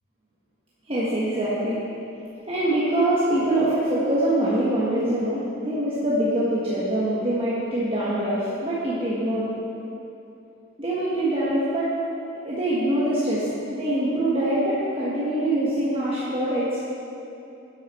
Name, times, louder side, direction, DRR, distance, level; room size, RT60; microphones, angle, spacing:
voice 1, 0.9-1.8 2.5-9.5 10.8-11.9 12.3-16.7, right 1 dB, 30° right, -9 dB, 1.4 m, -24 dB
10.5 x 8.1 x 4.3 m, 2.8 s
head